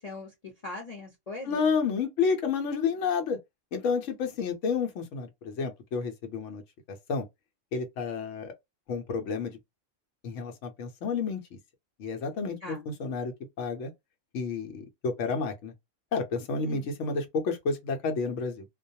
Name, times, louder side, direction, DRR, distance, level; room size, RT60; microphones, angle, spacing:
voice 1, 0.0-1.6 12.6-12.9 16.6-16.9, left 3 dB, 35° left, 0.8 m, -40 dB
voice 2, 1.4-3.4 3.7-6.6 7.1-7.3 7.7-8.5 8.9-9.6 10.2-11.6 12.0-13.9 14.3-15.7 16.1-18.6, left 5 dB, 70° left, 1.0 m, -30 dB
2.4 x 2.2 x 2.6 m
omnidirectional pair, 1.3 m